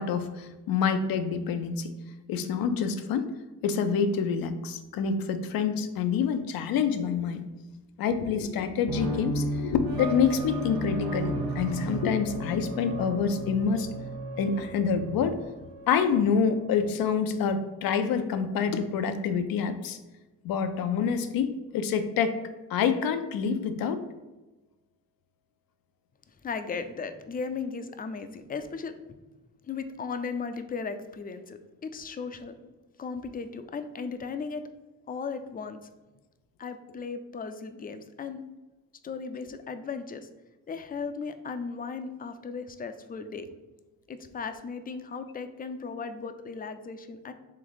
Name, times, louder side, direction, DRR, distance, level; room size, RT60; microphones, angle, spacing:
voice 1, 0.0-1.9 2.3-3.3 3.6-7.4 8.0-13.9 14.4-15.4 15.9-20.0 20.4-22.4 22.7-24.0, left 6 dB, 85° left, 8 dB, 0.5 m, -27 dB
sound 1, 8.9-16.2, right 1 dB, 85° right, 0.8 m, -34 dB
voice 2, 26.4-28.9 29.6-32.5 33.0-34.7 35.1-35.9 36.6-38.4 39.0-40.3 40.7-43.5 44.1-47.3, left 5 dB, 25° left, 9 dB, 0.4 m, -36 dB
3.4 x 3.2 x 3.9 m, 1.1 s
cardioid pair, 85°, 34 cm